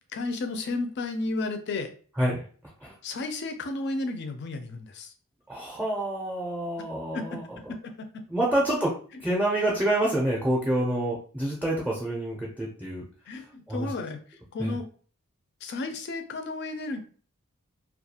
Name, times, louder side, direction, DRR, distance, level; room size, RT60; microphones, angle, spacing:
voice 1, 0.1-1.9 3.0-5.1 7.1-7.3 7.6-7.7 8.0-8.2 13.3-14.9 15.6-17.0, left 2 dB, 50° left, 6 dB, 0.4 m, -33 dB
voice 2, 5.5-7.6 8.3-13.0 13.7-13.9 14.6-14.8, right 1 dB, 5° right, -3 dB, 0.5 m, -27 dB
2.3 x 2.3 x 2.8 m, 0.42 s
head